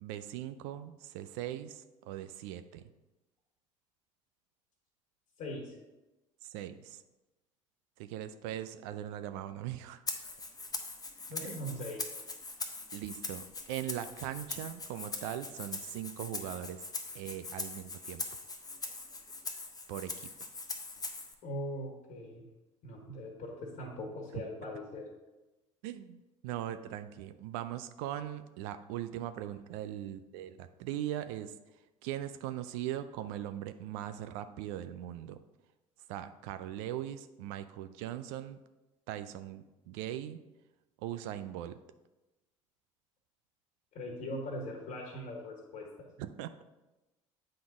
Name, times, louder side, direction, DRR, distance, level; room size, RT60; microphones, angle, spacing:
voice 1, 0.0-2.8 6.4-7.0 8.0-10.0 11.4-11.6 12.9-16.8 17.1-18.2 19.9-20.3 24.3-24.4 25.8-31.5 32.0-35.4 36.1-38.6 39.1-40.4 41.0-41.8 46.2-46.6, right 12 dB, 65° right, 10 dB, 0.4 m, -40 dB
voice 2, 5.4-5.8 11.3-12.0 21.4-22.4 22.8-25.1 43.9-46.1, left 1 dB, 50° left, -1 dB, 1.6 m, -41 dB
Rattle (instrument), 10.1-21.3, left 3 dB, 20° left, 1.1 m, -41 dB
8.6 x 3.9 x 4.8 m, 1.0 s
hypercardioid pair, 65°, 17 cm